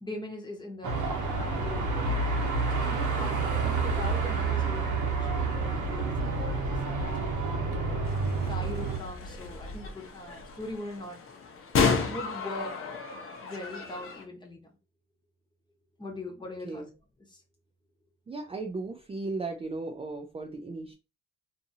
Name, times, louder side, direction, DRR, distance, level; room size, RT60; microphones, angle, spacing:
voice 1, 0.0-2.2 2.7-8.1 8.5-11.2 12.0-12.8 13.4-14.7 16.0-16.8 17.3-17.4, left 1 dB, 15° left, 0.9 m, -41 dB
Car passing by / Traffic noise roadway noise / Engine, 0.8-9.0, right 4 dB, 80° right, 0.9 m, -29 dB
sound 1, 8.0-14.2, left 5 dB, 45° left, 0.8 m, -32 dB
voice 2, 18.3-20.9, right 3 dB, 20° right, 0.4 m, -36 dB
2.6 x 2.6 x 2.6 m
cardioid pair, 90°, 30 cm